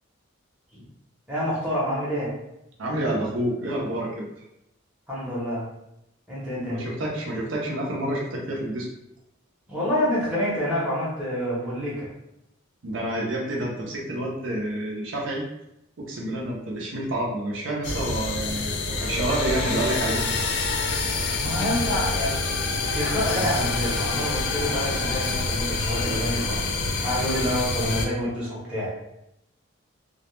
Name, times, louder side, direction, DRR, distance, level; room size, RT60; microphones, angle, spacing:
voice 1, 1.3-2.3 5.1-5.7 6.3-6.8 9.7-12.1 21.4-26.6 27.0-28.9, equal, 5° right, -8 dB, 0.7 m, -27 dB
voice 2, 2.8-4.2 6.7-8.9 12.8-15.4 16.0-20.3 21.4-21.5, right 1 dB, 70° right, -2 dB, 0.6 m, -28 dB
sound 1, 17.8-28.1, left 3 dB, 55° left, 0.3 m, -27 dB
2.3 x 2.0 x 2.9 m, 0.83 s
head